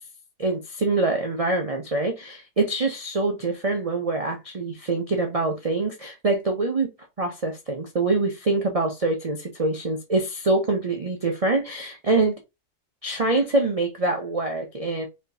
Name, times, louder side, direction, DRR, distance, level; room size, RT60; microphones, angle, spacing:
voice 1, 0.4-6.9 7.2-12.4 13.0-15.1, right 2 dB, 70° right, 0.3 m, -25 dB
4.3 x 3.1 x 2.7 m
omnidirectional pair, 1.7 m